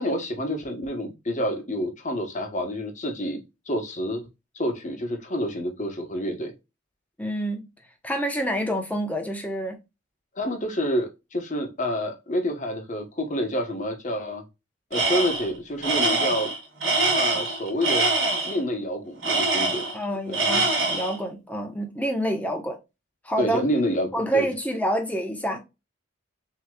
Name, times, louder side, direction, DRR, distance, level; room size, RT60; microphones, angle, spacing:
voice 1, 0.0-3.4 3.7-4.2 4.5-6.5 10.3-14.4 14.9-16.5 17.1-18.1 18.4-19.8 20.3-20.4 23.4-24.5, equal, 35° left, 1.2 m, -28 dB
voice 2, 7.2-7.6 8.0-9.8 19.9-22.8 23.2-23.6 24.1-25.6, right 1 dB, 5° left, 0.9 m, -27 dB
Tools, 14.9-15.5 15.8-18.6 19.2-20.0 20.3-21.2, right 2 dB, 70° right, 2.7 m, -24 dB
6.2 x 3.1 x 2.3 m
head